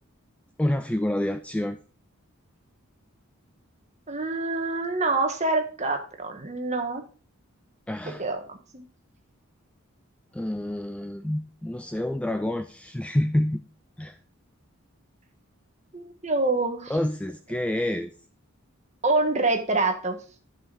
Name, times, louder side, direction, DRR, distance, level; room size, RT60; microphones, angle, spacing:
voice 1, 0.6-1.8 7.9-8.2 10.3-13.6 14.0-14.2 16.9-18.1, left 1 dB, 5° left, 9 dB, 0.3 m, -28 dB
voice 2, 4.1-7.0 8.1-8.9 15.9-16.9 19.0-20.2, right 3 dB, 30° right, 5 dB, 1.4 m, -26 dB
11.0 x 5.7 x 4.0 m, 0.38 s
head